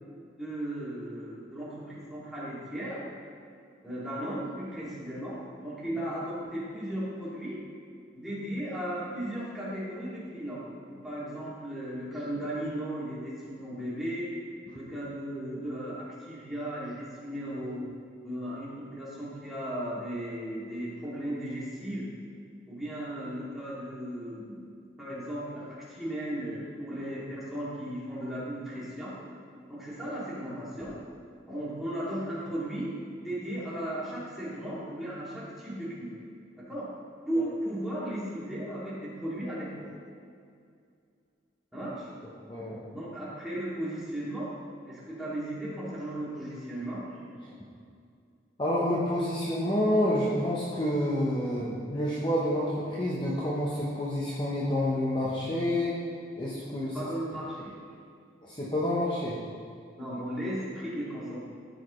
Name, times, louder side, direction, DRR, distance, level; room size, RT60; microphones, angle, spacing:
voice 1, 0.4-3.0 3.8-7.6 8.1-14.3 14.7-17.9 18.2-22.1 22.7-24.7 25.0-29.2 29.7-31.0 31.5-36.2 36.6-36.9 37.3-39.9 41.7-42.1 42.9-44.5 44.9-47.2 56.9-57.8 60.0-61.4, right 1 dB, ahead, -9 dB, 2.5 m, -36 dB
voice 2, 42.5-42.8 48.6-55.9 56.4-57.1 58.5-59.4, left 1 dB, 25° left, -6 dB, 0.9 m, -28 dB
14.0 x 6.6 x 3.2 m, 2.3 s
head